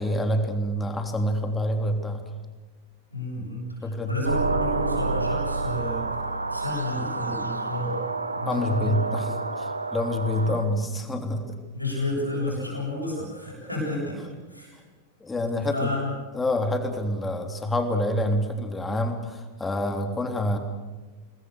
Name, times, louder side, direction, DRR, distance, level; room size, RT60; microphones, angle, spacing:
voice 1, 0.0-2.2 3.8-4.1 8.4-11.6 15.2-15.9 16.3-20.6, left 1 dB, 15° left, 5 dB, 3.4 m, -27 dB
voice 2, 3.1-6.1 6.5-8.0 8.3-9.3 10.3-10.5 11.7-14.2 14.5-14.8 15.7-16.1, left 2 dB, 85° left, -3 dB, 7.8 m, -31 dB
sound 1, 4.2-10.6, right 3 dB, 80° right, 1.4 m, -29 dB
27.5 x 20.5 x 6.9 m, 1.3 s
figure-of-eight pair, 90°, 0 cm